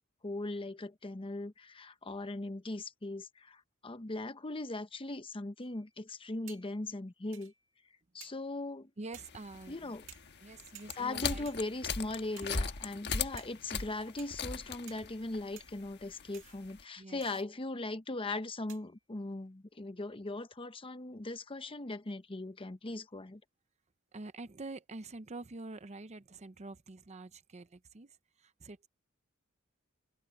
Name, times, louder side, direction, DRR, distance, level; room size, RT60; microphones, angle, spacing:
voice 1, 0.2-7.5 8.1-8.9 9.7-10.1 11.0-23.4, left 2 dB, 25° left, 0.9 m, -39 dB
sound 1, 5.6-6.0 6.5-6.9 7.3-7.8 8.2-8.6 9.1-9.4 10.1-10.5 10.7-11.2 11.5-12.0 12.4-12.8 13.4-13.8 14.2-14.5 14.9-15.2 15.6-16.0 16.3-16.6 17.2-17.5 18.7-19.0, right 12 dB, 65° right, 2.0 m, -56 dB
voice 2, 9.0-9.9 10.4-11.5 17.0-17.2 24.1-28.1 28.4-28.9, right 2 dB, 35° right, 0.7 m, -46 dB
sound 2, 9.1-16.8, left 5 dB, 55° left, 1.3 m, -39 dB
head